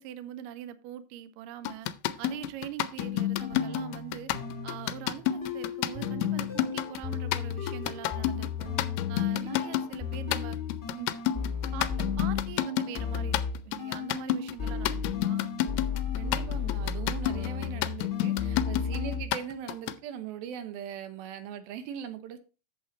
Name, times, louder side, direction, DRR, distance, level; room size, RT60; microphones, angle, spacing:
voice 1, 0.0-1.9 2.2-4.3 4.6-8.7 9.1-10.6 10.9-11.1 11.7-15.5, right 11 dB, 90° right, 1.9 m, -42 dB
sound 1, 1.6-19.9, left 12 dB, 85° left, 2.6 m, -30 dB
sound 2, 3.4-12.6 13.0-14.3 14.6-19.3, left 6 dB, 10° left, 1.2 m, -35 dB
voice 2, 16.1-22.4, right 9 dB, 75° right, 2.6 m, -40 dB
8.6 x 7.1 x 4.1 m
omnidirectional pair, 4.6 m